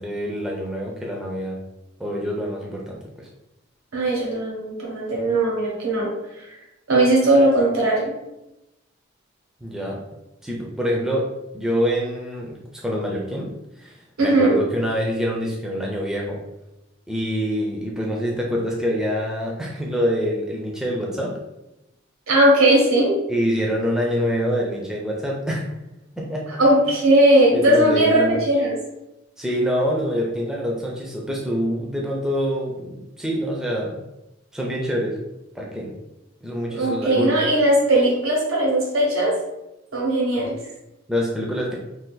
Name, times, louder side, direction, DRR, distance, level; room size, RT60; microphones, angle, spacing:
voice 1, 0.0-1.6 2.0-3.3 9.6-10.0 10.4-13.5 13.8-16.4 17.1-21.4 23.3-25.7 26.2-26.5 27.5-28.4 29.4-34.0 34.5-35.2 35.5-35.9 36.4-37.4 41.1-41.7, equal, 5° right, -2 dB, 0.4 m, -25 dB
voice 2, 3.9-6.5 6.9-8.1 14.2-14.6 22.3-23.1 26.6-28.7 36.7-39.4 39.9-40.6, right 1 dB, 85° right, -3 dB, 1.2 m, -18 dB
2.6 x 2.4 x 3.8 m, 0.93 s
head